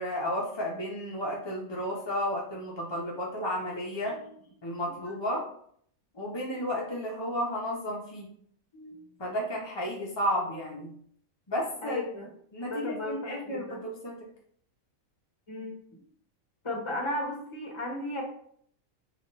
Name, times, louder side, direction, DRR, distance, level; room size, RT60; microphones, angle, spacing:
voice 1, 0.0-4.2 4.6-5.4 6.1-8.3 9.2-10.9 11.5-12.1 12.5-14.2, equal, 45° left, -3 dB, 0.3 m, -32 dB
voice 2, 11.8-12.3 12.6-13.8 15.5-15.8 16.6-18.2, left 1 dB, 25° left, -1 dB, 0.8 m, -35 dB
3.0 x 2.9 x 4.4 m, 0.63 s
omnidirectional pair, 1.5 m